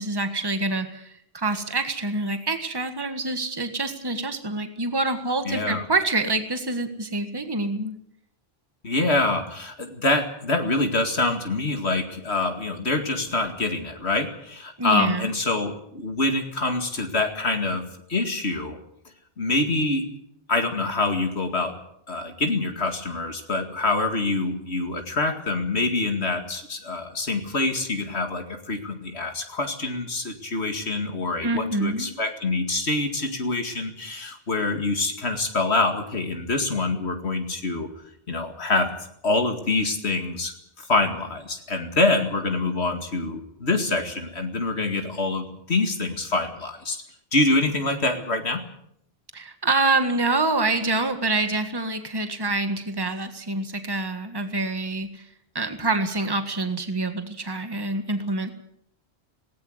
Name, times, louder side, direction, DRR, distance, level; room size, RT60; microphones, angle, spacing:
voice 1, 0.0-7.9 14.8-15.3 31.4-32.1 49.3-55.2 55.5-58.5, right 2 dB, 20° right, 8 dB, 1.7 m, -26 dB
voice 2, 5.5-5.8 8.8-17.8 18.1-18.8 19.4-20.1 20.5-21.8 22.1-37.9 38.3-38.9 39.2-47.0 47.3-48.6, left 2 dB, 75° left, 5 dB, 2.5 m, -25 dB
19.0 x 18.5 x 8.0 m, 0.73 s
omnidirectional pair, 1.1 m